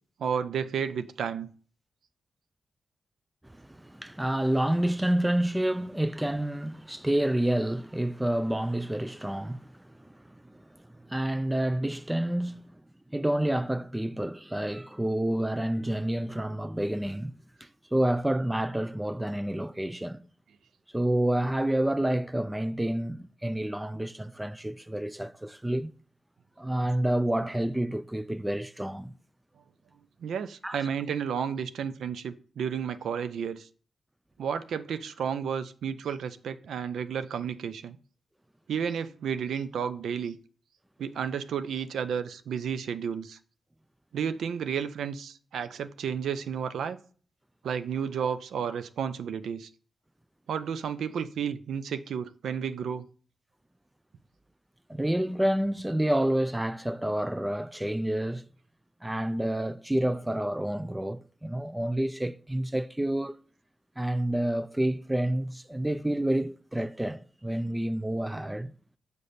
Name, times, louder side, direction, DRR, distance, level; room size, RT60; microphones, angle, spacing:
voice 1, 0.2-1.5 30.2-33.7 34.4-38.0 38.7-40.4 41.0-43.4 44.1-47.0 47.6-49.7 50.5-53.0, right 7 dB, 90° right, 0.4 m, -32 dB
voice 2, 3.4-10.6 10.9-12.8 13.1-17.3 17.6-20.2 20.9-25.9 26.6-29.1 30.6-30.9 54.9-58.5 59.0-63.4 64.0-68.7, right 1 dB, 10° right, 0.3 m, -29 dB
6.6 x 5.0 x 4.1 m
cardioid pair, 70°, 0 cm